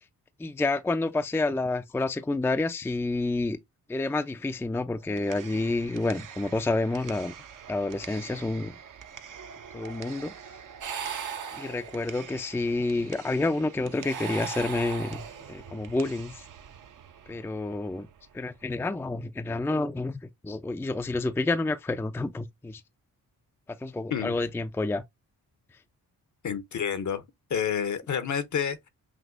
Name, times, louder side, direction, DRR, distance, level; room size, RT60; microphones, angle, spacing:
voice 1, 0.4-3.6 3.9-7.3 7.7-8.7 9.7-10.3 11.6-16.4 17.3-18.1 18.3-22.8 23.7-25.0, left 2 dB, 5° left, 0.4 m, -29 dB
sound 1, 4.9-18.9, right 7 dB, 55° right, 0.7 m, -47 dB
sound 2, 10.8-12.3 13.9-15.7, right 7 dB, 85° right, 1.3 m, -37 dB
voice 2, 26.4-27.2 27.5-28.9, left 7 dB, 50° left, 0.8 m, -29 dB
6.0 x 2.5 x 2.5 m
cardioid pair, 65°, 37 cm